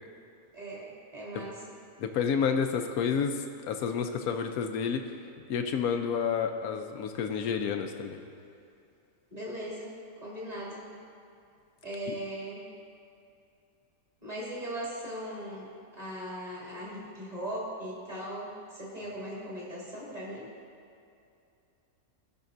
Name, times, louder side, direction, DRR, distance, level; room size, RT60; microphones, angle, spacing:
voice 1, 0.5-1.6 9.3-9.9 10.2-10.8 11.8-12.7 14.2-20.5, right 1 dB, 25° right, -7 dB, 2.4 m, -39 dB
voice 2, 2.0-3.4 3.6-5.0 5.5-8.2 12.1-12.2, left 6 dB, 85° left, 6 dB, 1.1 m, -30 dB
16.5 x 5.7 x 2.6 m, 2.6 s
omnidirectional pair, 1.5 m